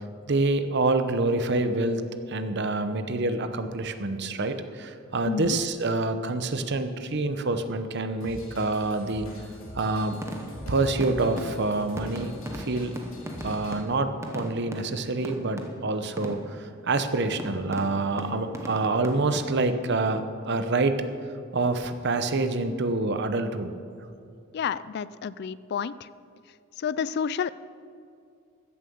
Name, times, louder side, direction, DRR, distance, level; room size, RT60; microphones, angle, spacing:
voice 1, 0.3-2.0 2.3-9.3 9.7-10.2 10.7-13.0 13.4-21.0 21.5-23.7, right 2 dB, 55° right, 9 dB, 0.8 m, -27 dB
Drum kit / Drum, 8.2-13.8, left 1 dB, 75° left, 2.4 m, -43 dB
sound 1, 10.1-16.7 17.4-19.6, equal, 15° right, 1.0 m, -39 dB
voice 2, 24.5-26.1 26.8-27.5, left 7 dB, 50° left, 17 dB, 0.3 m, -30 dB
15.0 x 7.5 x 6.9 m, 2.5 s
head